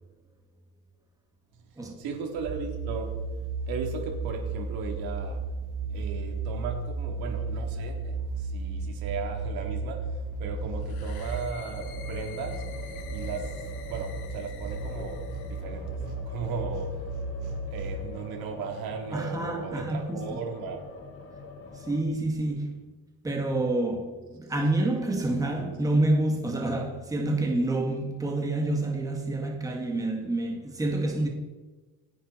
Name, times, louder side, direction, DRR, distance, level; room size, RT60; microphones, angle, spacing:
voice 1, 2.0-3.3 3.7-5.4 5.9-12.7 13.1-17.1 17.7-20.8, right 5 dB, 80° right, 3.7 m, -36 dB
sound 1, 2.4-18.0, right 3 dB, 55° right, 2.3 m, -34 dB
sound 2, 10.8-15.6, left 10 dB, 85° left, 2.0 m, -49 dB
sound 3, 11.6-14.4 14.7-22.0, left 3 dB, 35° left, 2.3 m, -44 dB
voice 2, 19.1-20.4 21.7-22.8 23.2-31.3, right 2 dB, 10° right, 2.0 m, -28 dB
27.5 x 10.5 x 4.5 m
cardioid pair, 175°, 36 cm